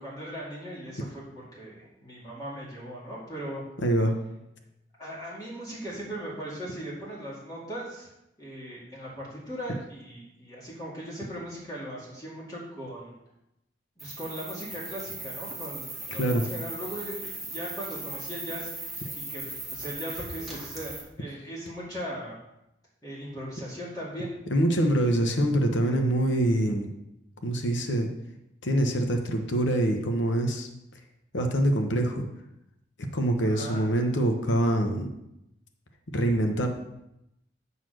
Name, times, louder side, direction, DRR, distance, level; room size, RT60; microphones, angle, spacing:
voice 1, 0.0-3.6 5.0-8.1 8.4-13.1 14.0-19.0 19.3-22.4 23.0-24.3 33.4-33.8, equal, 20° left, -6 dB, 2.0 m, -39 dB
voice 2, 3.8-4.1 16.1-16.4 24.5-26.9 27.4-28.1 28.6-30.7 31.3-32.2 33.1-35.1 36.1-36.7, right 1 dB, 85° left, 4 dB, 1.0 m, -25 dB
sound 1, 14.0-21.0, right 2 dB, ahead, 1.8 m, -38 dB
9.1 x 4.1 x 6.4 m, 0.87 s
head